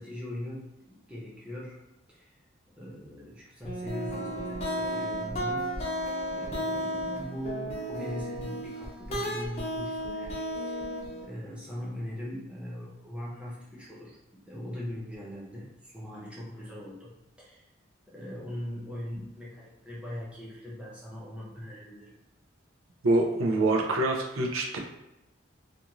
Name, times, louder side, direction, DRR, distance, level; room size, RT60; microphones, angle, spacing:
voice 1, 0.0-1.8 2.1-2.4 2.8-5.9 6.3-10.4 10.7-10.8 11.2-17.7 18.1-22.2, equal, 5° right, -7 dB, 0.7 m, -40 dB
sound 1, 3.6-11.2, equal, 30° left, 0.5 m, -33 dB
voice 2, 23.0-24.8, right 2 dB, 90° right, 0 dB, 0.5 m, -25 dB
2.5 x 2.4 x 2.9 m, 0.94 s
head